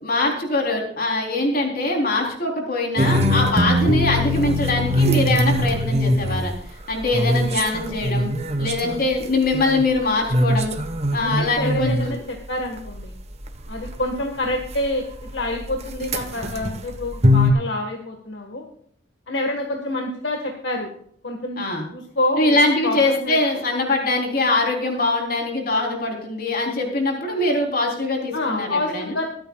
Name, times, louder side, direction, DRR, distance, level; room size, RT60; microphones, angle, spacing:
voice 1, 0.0-6.5 6.9-8.3 8.6-10.7 11.1-12.1 21.6-21.8 22.3-29.2, left 2 dB, 50° left, 1 dB, 3.7 m, -22 dB
sound 1, 3.0-10.0 10.3-14.2 14.5-17.5, equal, 35° right, 1.1 m, -22 dB
voice 2, 11.2-13.1 13.7-15.0 15.3-18.6 19.3-20.9 21.2-21.6 21.9-22.6 22.8-23.6 28.3-29.3, left 1 dB, 75° left, 2 dB, 1.6 m, -27 dB
23.5 x 9.0 x 2.4 m, 0.68 s
head